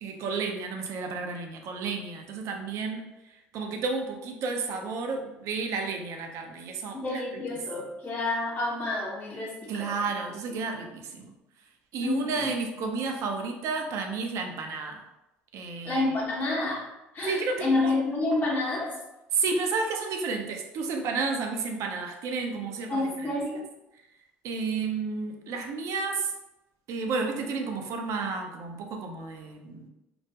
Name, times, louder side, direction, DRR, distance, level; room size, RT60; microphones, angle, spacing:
voice 1, 0.0-3.0 3.5-7.0 9.7-11.3 11.9-15.0 15.5-16.0 17.3-17.9 19.3-23.0 24.4-26.3 26.9-29.9, right 4 dB, 60° right, 3 dB, 0.4 m, -31 dB
voice 2, 6.9-9.9 12.0-12.5 15.8-16.9 17.1-19.0 22.9-23.6, left 2 dB, 30° left, -3 dB, 0.7 m, -29 dB
2.3 x 2.1 x 2.7 m, 0.92 s
hypercardioid pair, 65°, 6 cm